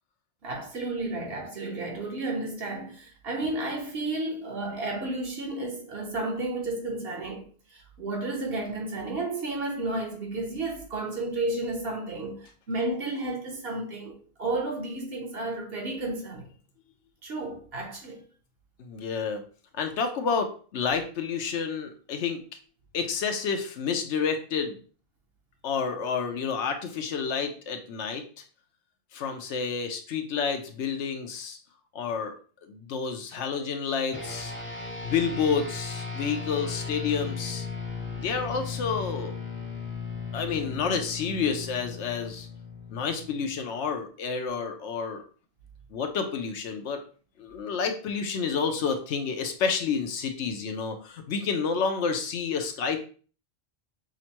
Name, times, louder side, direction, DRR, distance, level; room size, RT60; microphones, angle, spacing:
voice 1, 0.4-7.5 7.7-16.5 17.2-18.2, right 2 dB, 60° right, 1.2 m, -32 dB
voice 2, 18.8-19.4 19.8-22.4 22.9-24.8 25.6-28.2 29.1-31.6 31.9-32.3 32.7-34.5 35.0-37.7 38.2-39.3 40.3-42.5 42.9-45.2 45.9-47.0 47.4-53.0, left 6 dB, 90° left, 1.0 m, -29 dB
sound 1, 34.1-43.8, left 5 dB, 15° left, 0.5 m, -36 dB
6.1 x 2.1 x 2.9 m
omnidirectional pair, 1.1 m